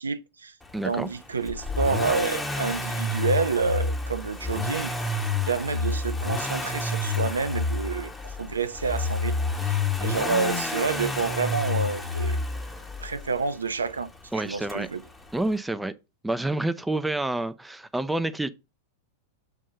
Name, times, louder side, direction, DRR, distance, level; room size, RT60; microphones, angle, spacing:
voice 1, 0.0-0.5 0.8-4.9 5.5-9.4 9.6-12.4 13.0-14.1 14.3-15.0, right 5 dB, 75° right, 0.4 m, -28 dB
voice 2, 0.7-1.1 14.3-14.9 15.3-15.9 16.2-18.5, right 2 dB, 5° right, 0.5 m, -28 dB
Accelerating revving vroom, 1.5-13.4 14.7-14.8, left 3 dB, 10° left, 1.0 m, -29 dB
6.9 x 2.7 x 5.6 m
figure-of-eight pair, 90°, 0 cm